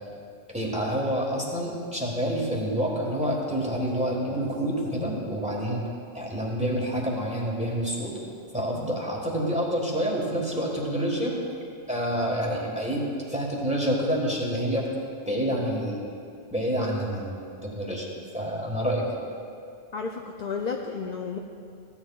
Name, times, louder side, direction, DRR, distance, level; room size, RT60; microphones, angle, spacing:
voice 1, 0.5-5.8 6.1-8.2 8.5-11.3 11.9-13.0 13.3-14.9 15.2-16.1 16.5-18.1 18.3-19.2, equal, 5° right, -3 dB, 1.4 m, -28 dB
voice 2, 19.9-21.4, left 5 dB, 55° left, 2 dB, 0.5 m, -32 dB
14.5 x 9.6 x 2.4 m, 2.5 s
omnidirectional pair, 1.2 m